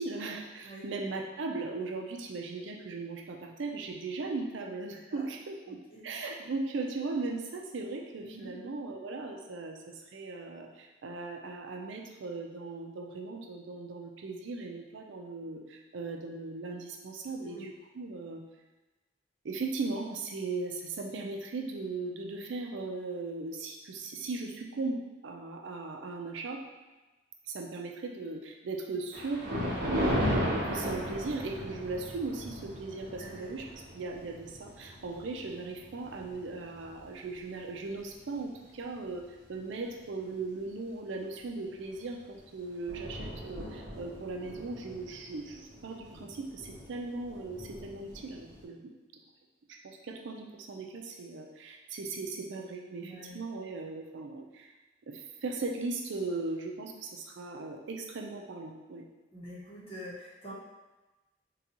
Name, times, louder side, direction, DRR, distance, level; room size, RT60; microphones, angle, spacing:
voice 1, 0.0-5.8 6.0-18.4 19.4-26.6 27.5-29.4 29.9-48.9 49.7-54.7 55.1-59.0, right 3 dB, 75° right, 1 dB, 0.4 m, -38 dB
voice 2, 5.7-6.1 8.3-8.5 17.4-17.6 33.0-33.5 53.0-53.4 59.3-60.5, equal, 30° left, -9 dB, 0.9 m, -46 dB
Thunder, 29.1-37.7 38.2-38.4 39.1-39.2 39.6-39.7 41.8-42.1 42.4-42.5 42.6-48.6, equal, 55° right, 0.8 m, -37 dB
3.9 x 2.3 x 2.8 m, 1.1 s
head